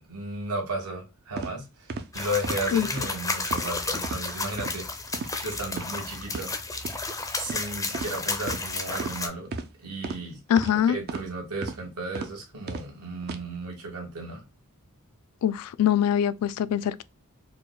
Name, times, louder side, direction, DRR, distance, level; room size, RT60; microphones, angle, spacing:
voice 1, 0.1-1.6 2.1-4.9 5.4-6.5 7.3-9.5 9.8-10.4 10.6-14.4, right 1 dB, 75° right, 1.3 m, -34 dB
sound 1, 1.4-1.5 1.9-2.1 2.4-2.6 3.0-3.1 3.5-3.7 4.0-4.2 4.6-4.8 5.1-5.3 5.7-5.9 6.3-6.5 6.8-7.0 7.5-7.6 7.9-8.1 8.5-8.6 9.0-9.2 9.5-9.7 10.0-10.2 10.6-10.7 11.1-11.3 11.6-11.8 12.1-12.3 12.7-12.9 13.2-13.4, right 4 dB, 45° right, 0.4 m, -34 dB
sound 2, 2.1-9.3, left 3 dB, 15° left, 0.5 m, -32 dB
voice 2, 10.5-11.0 15.4-17.0, left 9 dB, 85° left, 0.3 m, -23 dB
4.6 x 2.1 x 2.2 m
head